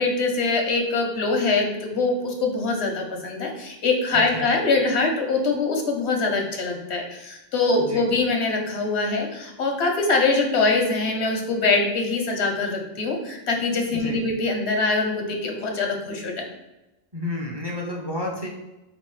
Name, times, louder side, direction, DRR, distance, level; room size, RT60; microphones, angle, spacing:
voice 1, 0.0-16.3, left 3 dB, 90° left, 2 dB, 1.1 m, -23 dB
voice 2, 4.1-4.5 7.9-8.1 13.9-14.3 17.1-18.5, left 1 dB, 30° right, -2 dB, 0.5 m, -31 dB
4.0 x 3.1 x 3.1 m, 0.99 s
omnidirectional pair, 1.1 m